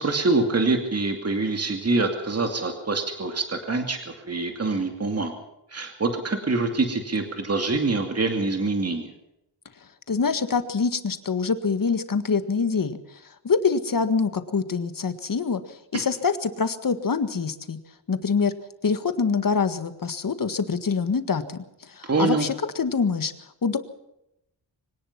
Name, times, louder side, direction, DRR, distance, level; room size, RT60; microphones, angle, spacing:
voice 1, 0.0-5.3 5.7-9.1 22.1-22.5, right 3 dB, 35° right, 5 dB, 2.5 m, -25 dB
voice 2, 10.1-13.0 13.4-17.8 18.1-18.5 18.8-23.3 23.6-23.8, left 5 dB, 45° left, 10 dB, 1.8 m, -25 dB
24.5 x 18.0 x 5.9 m, 0.83 s
wide cardioid pair, 160°, 45 cm